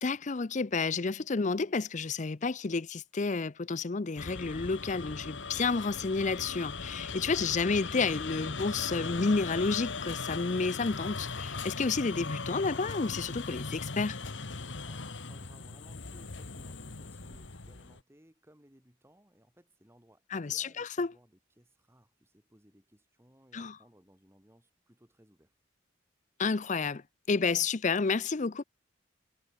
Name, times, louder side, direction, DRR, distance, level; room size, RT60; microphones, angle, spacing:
voice 1, 0.0-14.2 20.3-21.1 23.5-23.7 26.4-27.0 27.3-28.6, left 4 dB, 40° left, 0.6 m, -30 dB
sound 1, 4.2-18.0, left 4 dB, 75° left, 1.6 m, -39 dB
voice 2, 14.8-25.5, equal, 15° right, 4.5 m, -62 dB
head